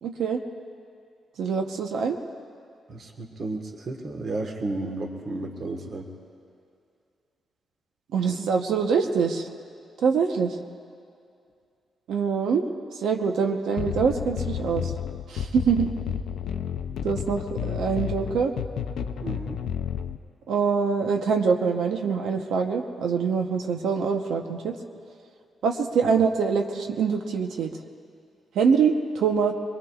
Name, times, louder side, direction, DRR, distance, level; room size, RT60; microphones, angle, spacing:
voice 1, 0.0-0.4 1.4-2.2 8.1-9.5 10.0-10.6 12.1-12.7 13.0-14.9 15.3-15.9 17.0-18.5 20.5-24.8 25.6-27.7 28.5-29.5, right 6 dB, 80° right, 4 dB, 0.9 m, -24 dB
voice 2, 2.9-6.1 19.2-19.6 26.0-26.1, right 2 dB, 45° right, 2 dB, 1.4 m, -33 dB
sound 1, 13.8-20.2, left 8 dB, 90° left, 0.5 m, -31 dB
23.5 x 22.5 x 2.4 m, 2.4 s
wide cardioid pair, 155°, 0 cm